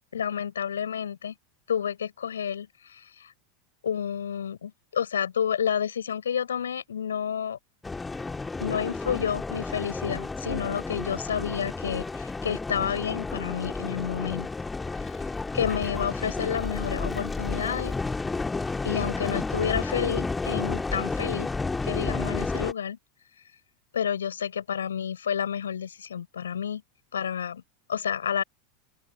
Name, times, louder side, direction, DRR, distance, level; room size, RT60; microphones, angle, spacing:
voice 1, 0.1-1.3 1.7-3.3 3.8-7.6 8.6-14.5 15.5-17.9 18.8-21.5 21.8-23.0 23.9-26.8 27.1-27.6 27.9-28.4, left 8 dB, 70° left, 7.1 m, -30 dB
sound 1, 7.8-22.7, left 3 dB, 10° left, 2.1 m, -31 dB
open air
figure-of-eight pair, 85°, 0 cm